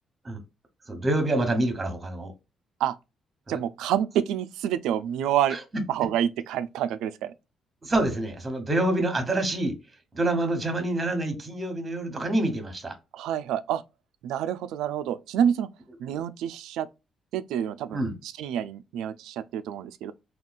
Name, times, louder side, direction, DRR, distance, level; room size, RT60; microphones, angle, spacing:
voice 1, 0.9-2.3 3.5-3.6 5.5-5.6 7.8-9.7 10.1-12.9 17.9-18.2, right 1 dB, 25° right, 1.0 m, -27 dB
voice 2, 3.5-5.6 5.9-7.3 13.1-13.8 14.2-15.7 16.0-16.9 17.3-20.1, right 10 dB, 90° right, 0.3 m, -28 dB
3.6 x 2.4 x 2.3 m
cardioid pair, 90°, 0 cm